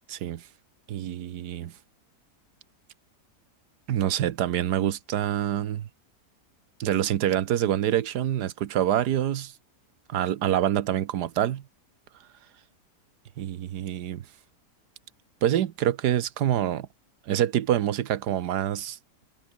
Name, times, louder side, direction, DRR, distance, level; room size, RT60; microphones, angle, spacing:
voice 1, 0.1-0.4 0.9-1.7 3.9-5.9 6.8-9.5 10.1-11.6 13.4-14.2 15.4-16.9 17.3-19.0, right 11 dB, 80° right, 1.5 m, -26 dB
omnidirectional pair, 1.7 m